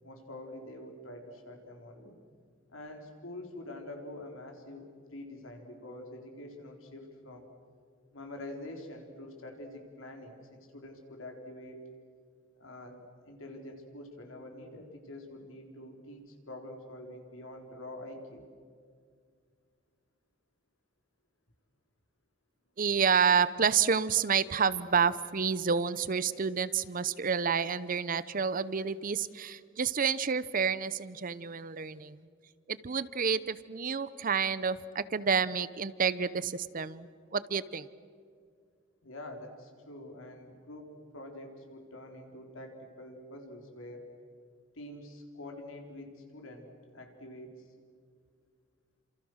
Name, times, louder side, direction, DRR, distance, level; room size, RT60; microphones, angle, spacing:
voice 1, 0.0-2.1 2.7-7.5 8.1-11.8 12.6-18.5 39.0-44.1 44.7-47.6, left 1 dB, 85° left, 3 dB, 4.2 m, -46 dB
voice 2, 22.8-32.2 32.7-37.9, right 6 dB, 45° right, 17 dB, 0.7 m, -29 dB
28.5 x 27.0 x 6.5 m, 2.1 s
head